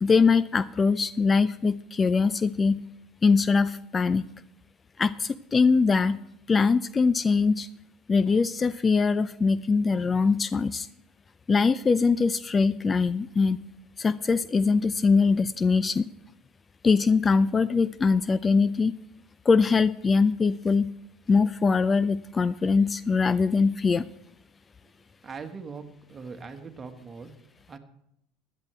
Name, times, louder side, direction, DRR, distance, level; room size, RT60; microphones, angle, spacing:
voice 1, 0.0-2.8 3.2-4.3 5.0-6.2 6.5-7.7 8.1-10.9 11.5-13.6 14.0-16.1 16.8-18.9 19.5-20.9 21.3-24.1, left 4 dB, 25° left, 16 dB, 0.4 m, -22 dB
voice 2, 25.2-25.8 26.1-27.3 27.7-27.8, right 5 dB, 30° right, 6 dB, 1.6 m, -40 dB
16.0 x 11.0 x 3.4 m, 0.77 s
hypercardioid pair, 80°, 0 cm